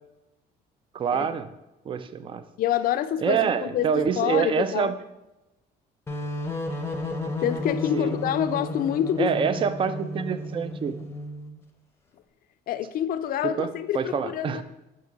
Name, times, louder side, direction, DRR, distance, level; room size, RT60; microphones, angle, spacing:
voice 1, 0.9-1.5 1.9-2.4 3.2-5.0 7.9-8.2 9.2-11.0 13.4-14.6, right 7 dB, 30° right, 0.4 m, -26 dB
voice 2, 2.6-3.9 4.2-4.9 7.4-9.3 12.7-14.6, left 10 dB, 60° left, 0.4 m, -27 dB
sound 1, 6.1-11.6, left 1 dB, 15° left, 0.7 m, -33 dB
6.0 x 3.7 x 5.2 m
cardioid pair, 110°, 17 cm